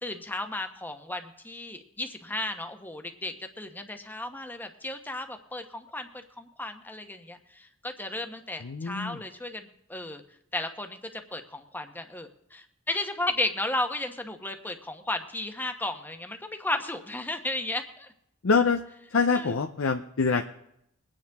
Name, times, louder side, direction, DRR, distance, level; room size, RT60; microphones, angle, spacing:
voice 1, 0.0-6.1 6.4-10.2 10.5-18.1 19.3-19.6, left 2 dB, 10° left, 6 dB, 1.1 m, -34 dB
voice 2, 8.6-9.2 18.4-18.8 19.1-20.5, left 4 dB, 75° left, 5 dB, 0.7 m, -25 dB
22.5 x 9.6 x 3.5 m, 0.76 s
head